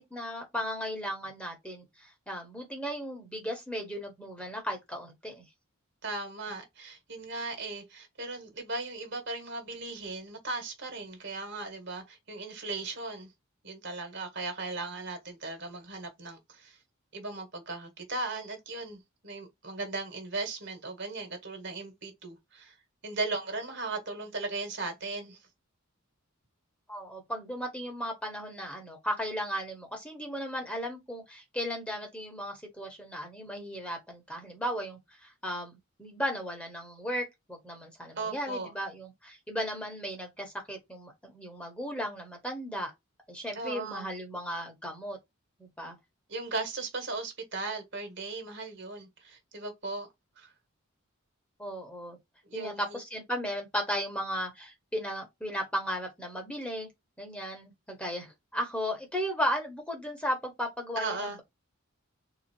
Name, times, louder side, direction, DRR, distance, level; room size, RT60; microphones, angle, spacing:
voice 1, 0.0-5.4 26.9-42.9 43.3-45.2 45.6-46.0 51.6-52.2 52.5-56.9 57.2-61.4, equal, 5° left, 1.4 m, -36 dB
voice 2, 6.0-13.3 13.6-16.8 17.1-22.7 23.0-25.4 38.2-38.7 43.5-44.1 46.3-50.1 50.4-50.5 52.4-53.0 61.0-61.4, right 3 dB, 55° right, 1.8 m, -37 dB
4.0 x 2.9 x 4.5 m
head